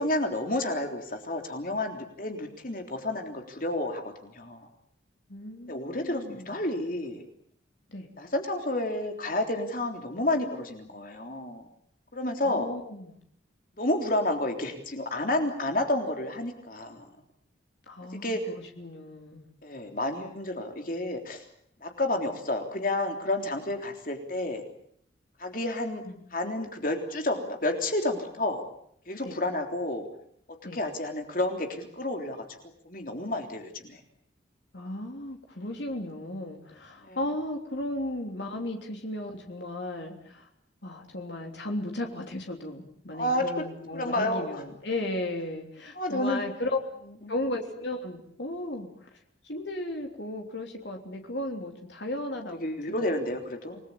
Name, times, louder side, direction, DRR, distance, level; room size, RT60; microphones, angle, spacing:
voice 1, 0.0-4.7 5.7-7.3 8.2-11.7 12.1-12.7 13.8-17.1 18.2-18.5 19.6-21.4 21.8-24.6 25.4-26.0 26.3-28.6 29.1-30.1 30.7-32.5 32.8-34.0 37.0-37.2 43.1-43.7 43.9-44.6 45.9-46.4 47.2-47.4 52.6-53.8, left 1 dB, 45° left, 4 dB, 3.5 m, -30 dB
voice 2, 5.3-6.6 7.9-8.1 12.4-13.2 17.9-19.5 26.0-26.2 29.2-29.4 30.6-30.8 34.7-40.5 40.8-46.8 47.3-49.1 49.4-53.1, left 1 dB, 70° left, 2 dB, 3.4 m, -35 dB
29.0 x 20.5 x 8.7 m, 0.68 s
head